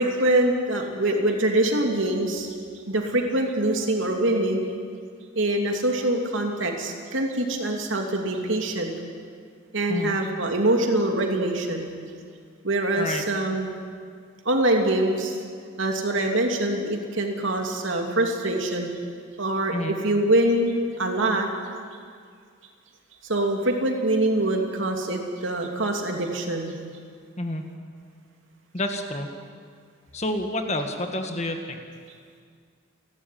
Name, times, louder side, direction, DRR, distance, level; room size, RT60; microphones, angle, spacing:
voice 1, 0.0-2.5 2.9-4.7 5.3-8.9 9.7-11.9 12.6-13.7 14.4-15.4 15.8-18.9 19.4-21.5 23.3-26.8, right 1 dB, 65° right, 2 dB, 2.9 m, -24 dB
voice 2, 13.0-13.3 19.7-20.0 27.4-27.6 28.7-29.3 30.1-31.8, left 1 dB, 35° left, 5 dB, 1.9 m, -29 dB
29.0 x 12.5 x 9.5 m, 2.1 s
head